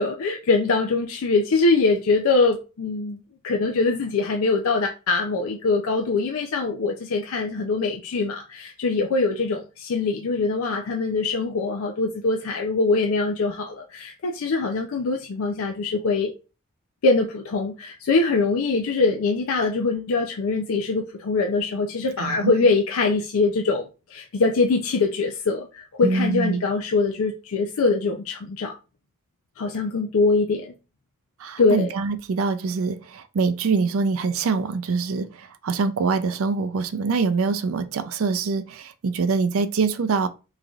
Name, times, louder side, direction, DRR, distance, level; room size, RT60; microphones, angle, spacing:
voice 1, 0.0-16.3 17.0-28.8 29.6-30.7 31.6-31.9, left 3 dB, 75° left, 0.4 m, -23 dB
voice 2, 22.2-22.5 26.0-26.6 31.4-40.3, right 4 dB, 70° right, 0.4 m, -24 dB
3.8 x 3.2 x 2.3 m
head